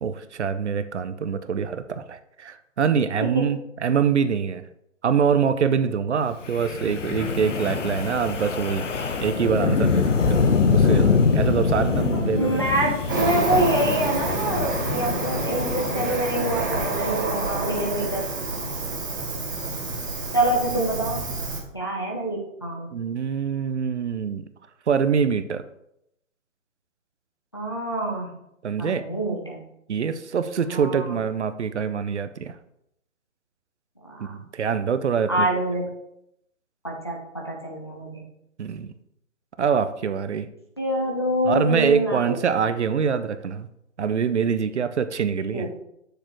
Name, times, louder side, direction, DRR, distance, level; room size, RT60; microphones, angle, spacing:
voice 1, 0.0-4.6 5.0-8.9 9.2-12.6 22.9-24.5 24.9-25.6 28.6-29.0 29.9-32.5 34.2-35.5 38.6-38.9 39.6-40.5 41.5-43.7 44.0-45.7, right 6 dB, 60° right, 11 dB, 0.6 m, -24 dB
voice 2, 3.2-3.5 12.3-18.3 20.3-21.3 21.7-22.9 27.5-28.3 28.8-29.6 30.7-31.2 34.0-34.4 35.3-35.8 36.8-38.2 40.8-42.4 45.5-45.7, right 1 dB, 20° left, -2 dB, 0.6 m, -26 dB
Wind, 6.4-16.7, left 5 dB, 65° left, 0.9 m, -24 dB
Cricket, 13.1-21.6, right 2 dB, 15° right, 0.8 m, -28 dB
8.2 x 6.6 x 3.1 m, 0.79 s
hypercardioid pair, 170°, 40 cm